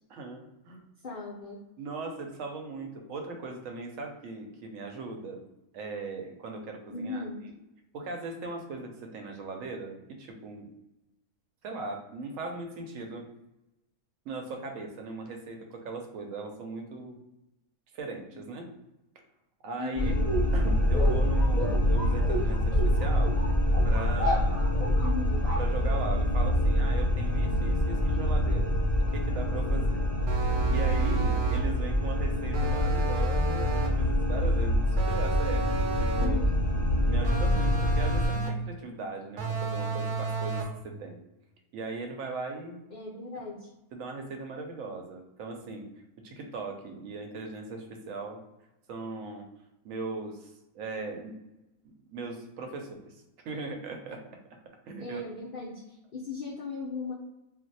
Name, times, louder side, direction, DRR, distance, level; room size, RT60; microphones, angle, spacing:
voice 1, 0.1-0.8 1.8-5.4 5.7-7.2 7.9-10.7 11.6-13.2 14.3-17.2 17.9-18.7 19.6-20.1 20.5-23.4 23.8-24.7 25.6-30.1 30.7-36.4 37.1-41.2 41.7-42.8 43.9-45.9 46.2-48.4 48.9-49.5 49.8-51.3 51.8-54.2 54.9-55.2, right 3 dB, 70° right, 3 dB, 0.9 m, -39 dB
voice 2, 1.0-1.6 6.9-7.5 18.3-18.4 19.8-20.2 25.0-25.5 36.2-36.6 42.9-43.7 55.0-57.1, left 4 dB, 70° left, -5 dB, 0.5 m, -37 dB
sound 1, 20.0-38.3, equal, 15° left, 0.9 m, -26 dB
sound 2, 20.1-26.3, equal, 35° right, 0.6 m, -31 dB
sound 3, 30.3-31.7 32.5-34.0 35.0-36.4 37.2-38.7 39.4-40.8, right 4 dB, 90° right, 1.1 m, -31 dB
2.5 x 2.0 x 3.9 m, 0.93 s
omnidirectional pair, 1.6 m